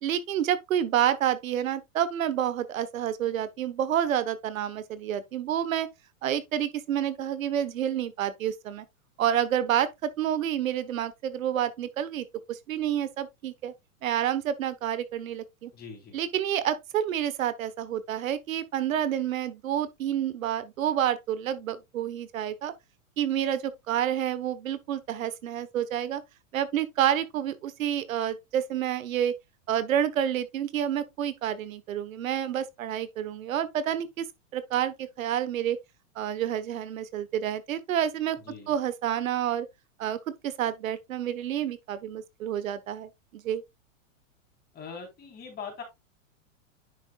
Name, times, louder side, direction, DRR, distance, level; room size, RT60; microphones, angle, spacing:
voice 1, 0.0-5.9 6.2-8.8 9.2-13.7 14.0-15.7 16.1-22.7 23.2-26.2 26.5-29.3 29.7-34.3 34.5-35.8 36.1-38.4 38.7-39.7 40.0-40.2 40.4-43.6, right 10 dB, 80° right, 1.2 m, -29 dB
voice 2, 15.7-16.2 38.5-38.7 44.7-45.8, left 5 dB, 25° left, 3.8 m, -41 dB
9.9 x 6.2 x 2.3 m
hypercardioid pair, 135°, 40 cm